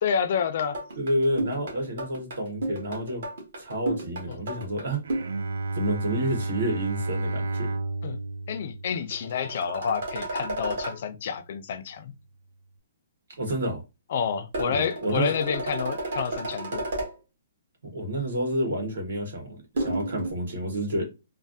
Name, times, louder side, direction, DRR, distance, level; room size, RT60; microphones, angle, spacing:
voice 1, 0.0-0.8 4.3-4.4 8.0-8.2 8.5-12.1 14.1-16.8, left 7 dB, 35° left, 0.3 m, -29 dB
sound 1, 0.7-5.3 9.1-11.0 14.5-17.1 19.8-20.3, right 2 dB, 50° right, 1.1 m, -32 dB
voice 2, 1.0-3.2 3.6-5.0 5.7-7.8 13.4-13.8 14.7-15.3 17.8-21.1, right 1 dB, 70° right, 1.5 m, -29 dB
Bowed string instrument, 5.0-10.3, right 2 dB, 85° right, 0.4 m, -32 dB
3.2 x 2.0 x 2.5 m
hypercardioid pair, 180°, 0 cm